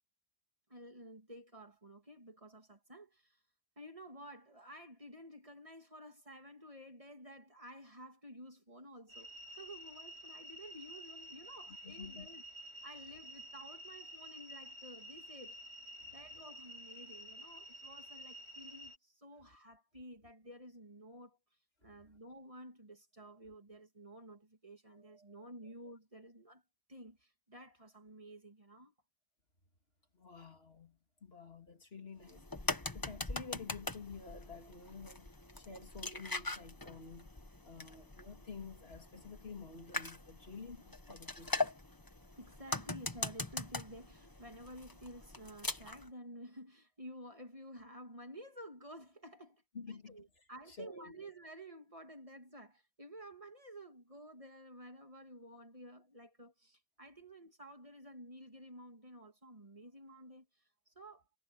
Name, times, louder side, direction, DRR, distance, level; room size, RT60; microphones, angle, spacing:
voice 1, 0.7-3.4 3.8-12.4 12.8-15.6 16.1-21.4 21.8-26.6 26.9-28.9 42.4-49.6 49.9-61.2, equal, 30° right, 2.6 m, -52 dB
sound 1, 9.1-19.0, equal, 85° right, 3.4 m, -51 dB
voice 2, 11.8-12.3 16.0-16.4 21.8-22.1 24.9-25.7 30.1-37.3 37.6-41.6 49.7-50.2 50.7-51.1, left 4 dB, 70° left, 3.1 m, -51 dB
sound 2, 32.2-46.1, left 2 dB, 20° left, 1.4 m, -42 dB
omnidirectional pair, 1.1 m